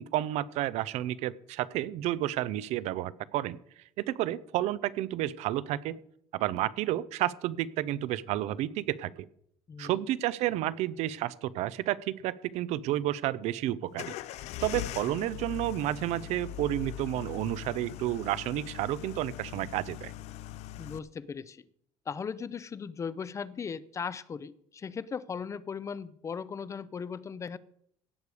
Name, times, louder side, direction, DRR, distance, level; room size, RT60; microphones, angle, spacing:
voice 1, 0.0-3.6 4.0-6.0 6.3-9.3 9.8-14.1 14.6-20.1, right 14 dB, 85° right, 0.6 m, -31 dB
sound 1, 13.9-21.0, left 13 dB, 75° left, 0.5 m, -41 dB
voice 2, 20.8-21.6 22.1-27.6, left 6 dB, 25° left, 0.5 m, -38 dB
17.0 x 6.7 x 4.9 m
cardioid pair, 135°, 11 cm